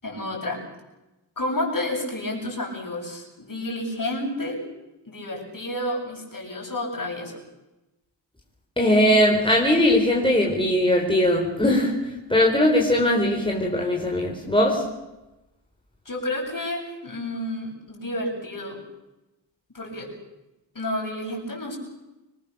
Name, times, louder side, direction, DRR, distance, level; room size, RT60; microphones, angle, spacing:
voice 1, 0.0-0.6 1.4-4.6 5.1-7.4 16.1-18.8 19.7-20.1 20.7-21.8, left 1 dB, 45° left, 0 dB, 7.7 m, -30 dB
voice 2, 8.8-11.9 12.3-14.8, left 1 dB, 10° left, -1 dB, 4.4 m, -20 dB
26.0 x 21.5 x 6.9 m, 0.99 s
wide cardioid pair, 80°, 46 cm